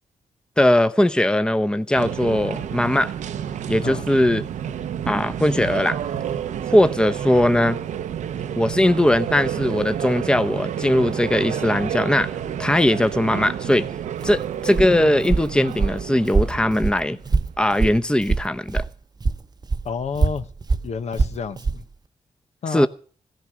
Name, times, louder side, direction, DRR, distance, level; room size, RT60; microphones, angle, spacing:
voice 1, 0.6-3.1 3.7-4.4 5.1-6.0 6.7-7.8 8.6-12.3 12.6-13.9 14.2-17.2 17.6-18.8 22.7-22.9, left 1 dB, 5° left, 0.8 m, -19 dB
sound 1, 1.9-17.8, right 9 dB, 85° right, 0.8 m, -30 dB
Walk footsteps, 14.2-18.9 19.2-21.8, right 4 dB, 35° right, 0.8 m, -24 dB
voice 2, 19.8-20.5 20.8-21.8 22.6-22.9, left 5 dB, 65° left, 1.0 m, -29 dB
16.5 x 10.5 x 6.2 m
cardioid pair, 65°, 12 cm